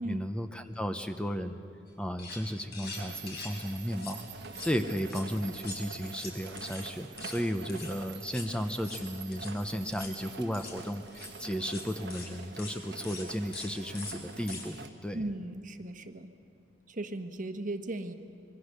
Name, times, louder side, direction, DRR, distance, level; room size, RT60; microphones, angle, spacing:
voice 1, 0.0-1.6 2.0-4.2 4.6-15.2, equal, 5° left, 7 dB, 0.8 m, -34 dB
sound 1, 1.9-2.0 2.2-2.4 2.7-3.6 3.9-4.2 4.4-5.2 5.5-6.9 7.2-7.4 7.7-7.9 8.2-8.5 8.8-9.0 9.3-9.5 9.9-10.1 10.5-10.8 11.1-11.3 11.7-11.8 12.1-12.3 12.6-12.8 13.0-13.3 13.5-13.7 13.9-14.1 14.5-14.7, left 4 dB, 60° left, 4.6 m, -44 dB
sound 2, 2.8-14.9, right 5 dB, 65° right, 1.3 m, -46 dB
voice 2, 15.1-16.3 16.9-18.1, right 2 dB, 45° right, 7 dB, 1.2 m, -37 dB
26.0 x 22.5 x 6.7 m, 2.5 s
head